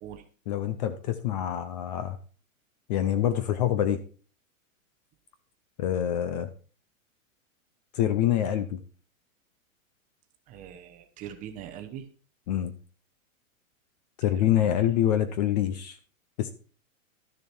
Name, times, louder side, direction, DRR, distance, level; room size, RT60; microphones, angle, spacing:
voice 1, 0.5-2.2 2.9-4.0 5.8-6.5 7.9-8.8 12.5-12.7 14.2-16.0 16.4-16.5, left 11 dB, 30° left, 12 dB, 0.6 m, -26 dB
voice 2, 10.5-12.1 14.2-14.7, right 10 dB, 20° right, 6 dB, 0.8 m, -42 dB
12.5 x 6.7 x 4.4 m, 0.39 s
supercardioid pair, 160°, 41 cm